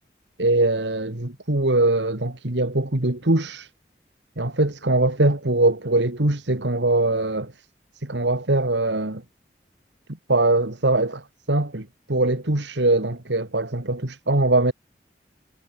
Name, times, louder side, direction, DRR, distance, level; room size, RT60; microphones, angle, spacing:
voice 1, 0.4-3.7 4.4-7.5 8.0-9.2 10.3-11.2 11.5-14.7, right 2 dB, 85° right, 2.3 m, -22 dB
head